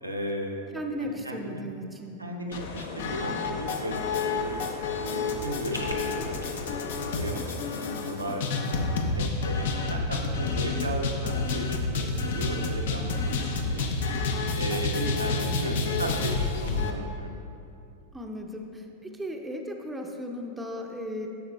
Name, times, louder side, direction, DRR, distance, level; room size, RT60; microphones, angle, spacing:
voice 1, 0.0-1.6 2.2-4.7 5.1-6.8 7.1-8.6 8.9-13.9 14.5-17.3, equal, 85° right, 0 dB, 0.7 m, -35 dB
voice 2, 0.7-2.2 18.1-21.3, equal, 10° right, 2 dB, 0.6 m, -36 dB
sound 1, 2.5-16.9, left 3 dB, 55° left, 0.6 m, -29 dB
sound 2, 5.1-6.5, equal, 90° left, 0.8 m, -40 dB
10.5 x 7.0 x 2.2 m, 2.6 s
figure-of-eight pair, 90°, 0 cm